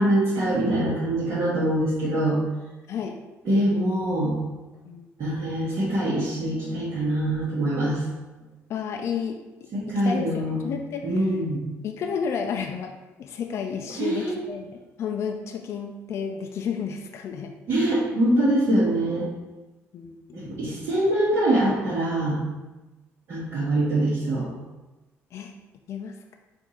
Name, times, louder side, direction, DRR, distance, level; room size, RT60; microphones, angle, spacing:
voice 1, 0.0-2.4 3.5-4.4 5.2-8.0 9.7-10.6 11.0-11.6 14.0-14.3 17.7-19.3 20.3-22.4 23.3-24.5, right 1 dB, 55° right, -9 dB, 1.3 m, -24 dB
voice 2, 2.9-3.2 4.9-5.1 8.7-11.3 11.8-12.9 13.2-17.5 19.9-20.8 25.3-25.5 25.9-26.4, left 6 dB, 55° left, 3 dB, 0.4 m, -32 dB
4.5 x 2.6 x 4.3 m, 1.1 s
cardioid pair, 115°, 6 cm